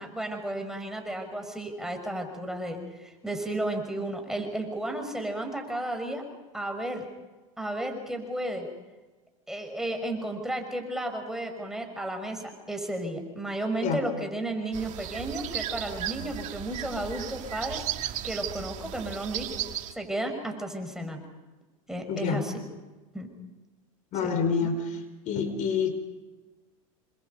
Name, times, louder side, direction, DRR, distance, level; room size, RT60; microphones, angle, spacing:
voice 1, 0.0-6.2 6.5-7.0 7.6-8.7 9.5-17.8 18.2-19.6 19.9-21.2 21.9-22.6 23.1-23.3 24.2-24.3 24.6-24.7, right 1 dB, 5° right, 4 dB, 5.9 m, -33 dB
sound 1, 14.7-19.9, right 12 dB, 45° right, 2.4 m, -35 dB
voice 2, 22.1-22.4 24.1-25.9, left 6 dB, 45° left, 8 dB, 4.8 m, -28 dB
28.5 x 26.5 x 5.4 m, 1.2 s
hypercardioid pair, 105°, 17 cm